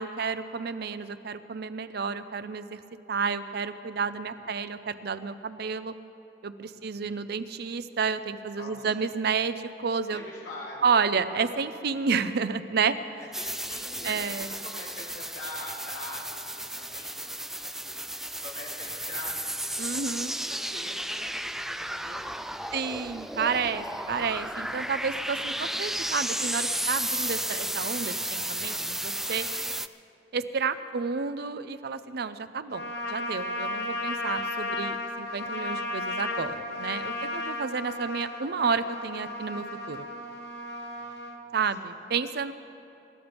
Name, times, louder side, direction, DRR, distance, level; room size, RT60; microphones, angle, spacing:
voice 1, 0.0-2.8 3.1-5.9 6.4-10.2 10.8-13.0 14.0-14.5 19.8-20.3 22.7-29.5 30.3-40.1 41.5-42.5, right 5 dB, 60° right, 12 dB, 0.6 m, -30 dB
voice 2, 4.0-4.5 6.7-7.3 8.5-9.0 10.1-11.1 13.2-22.7 40.7-41.2 41.8-42.0, left 2 dB, 90° left, -6 dB, 3.4 m, -45 dB
sound 1, 13.3-29.9, right 1 dB, ahead, 0.3 m, -33 dB
Trumpet, 32.7-41.4, left 2 dB, 65° left, 1.7 m, -34 dB
28.0 x 14.0 x 3.5 m, 2.8 s
head